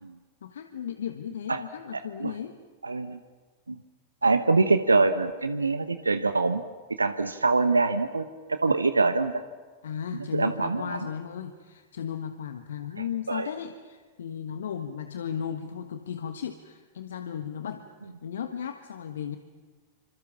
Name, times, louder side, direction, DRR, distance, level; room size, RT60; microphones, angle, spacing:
voice 1, 0.4-2.6 9.8-17.8 18.2-19.4, left 8 dB, 65° left, 8 dB, 1.4 m, -35 dB
voice 2, 1.9-2.3 2.8-3.2 3.7-3.8 4.2-6.6 6.9-9.3 10.3-11.0 13.3-13.5, right 3 dB, 80° right, 10 dB, 1.1 m, -24 dB
27.5 x 26.0 x 7.3 m, 1.4 s
figure-of-eight pair, 90°, 0 cm